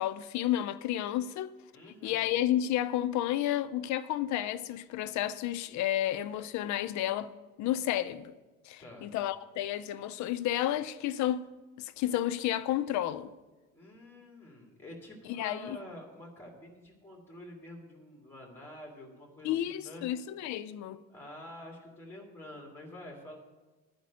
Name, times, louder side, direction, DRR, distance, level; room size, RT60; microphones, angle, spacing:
voice 1, 0.0-1.5 2.0-7.3 7.6-8.3 8.6-11.5 11.8-13.3 15.3-15.8 19.4-21.0, left 12 dB, 60° left, 0.5 m, -31 dB
voice 2, 1.7-2.2 8.8-9.1 13.7-20.1 21.1-23.4, left 1 dB, 5° left, 2.0 m, -48 dB
10.5 x 5.1 x 8.3 m
cardioid pair, 180°, 32 cm